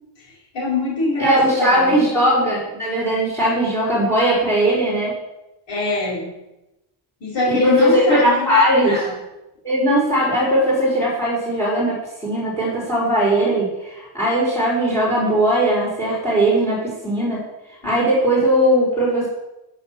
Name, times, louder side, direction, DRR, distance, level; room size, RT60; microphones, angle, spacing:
voice 1, 0.2-2.0 5.7-6.3 7.2-9.1 17.8-17.9, left 2 dB, 65° left, -8 dB, 4.5 m, -24 dB
voice 2, 1.2-5.1 7.5-9.0 9.6-12.0 12.2-17.4 17.8-19.3, right 1 dB, 5° left, -4 dB, 3.4 m, -19 dB
12.5 x 5.8 x 7.0 m, 0.95 s
wide cardioid pair, 180°, 46 cm